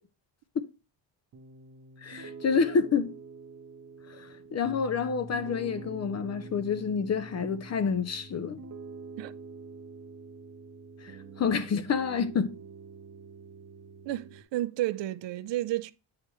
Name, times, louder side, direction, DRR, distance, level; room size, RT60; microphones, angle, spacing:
Piano, 1.3-14.4, right 4 dB, 35° right, 0.8 m, -46 dB
voice 1, 2.0-3.1 4.1-8.6 11.0-12.5, left 6 dB, 35° left, 0.5 m, -28 dB
voice 2, 14.0-15.9, right 15 dB, 65° right, 0.6 m, -31 dB
8.9 x 5.0 x 3.0 m
cardioid pair, 145°, 47 cm